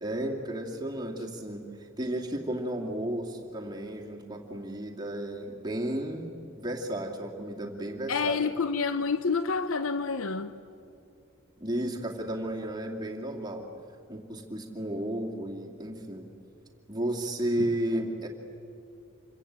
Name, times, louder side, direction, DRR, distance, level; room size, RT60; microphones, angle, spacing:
voice 1, 0.0-8.4 11.6-13.7 14.1-16.3 16.9-18.3, right 1 dB, 20° right, 2.5 m, -33 dB
voice 2, 8.1-10.6 17.6-17.7, left 5 dB, 70° left, 0.7 m, -28 dB
27.5 x 24.5 x 8.8 m
head